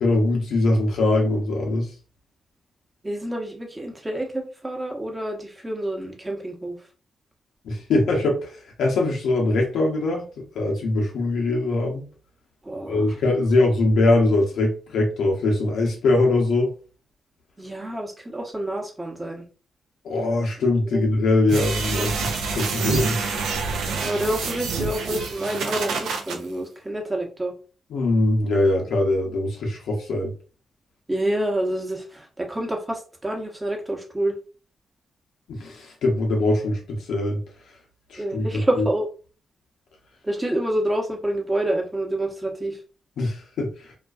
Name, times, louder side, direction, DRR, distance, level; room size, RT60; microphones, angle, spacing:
voice 1, 0.0-1.9 7.6-8.5 8.8-10.2 10.5-12.0 12.9-16.7 20.0-23.2 27.9-30.3 35.5-37.4 38.1-38.9 43.2-43.7, left 2 dB, 75° left, 0.7 m, -22 dB
voice 2, 3.0-6.8 12.6-13.0 13.6-13.7 17.6-19.4 20.8-21.1 23.9-27.5 31.1-34.4 38.2-39.1 40.2-42.8, right 1 dB, 20° right, 0.9 m, -28 dB
sound 1, 21.5-26.4, right 4 dB, 80° right, 0.4 m, -27 dB
2.4 x 2.2 x 2.4 m
supercardioid pair, 45°, 0 cm